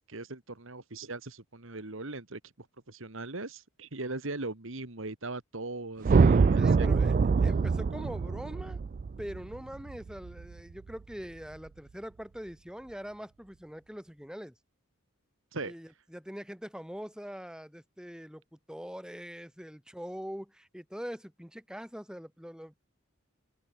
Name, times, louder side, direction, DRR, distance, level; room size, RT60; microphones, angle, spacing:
voice 1, 0.0-6.9 15.5-15.7, right 2 dB, 65° right, 2.0 m, -39 dB
sound 1, 6.0-10.4, right 4 dB, 40° right, 0.3 m, -24 dB
voice 2, 6.5-7.1 7.4-8.8 9.2-14.5 15.6-22.8, equal, 5° right, 6.4 m, -43 dB
head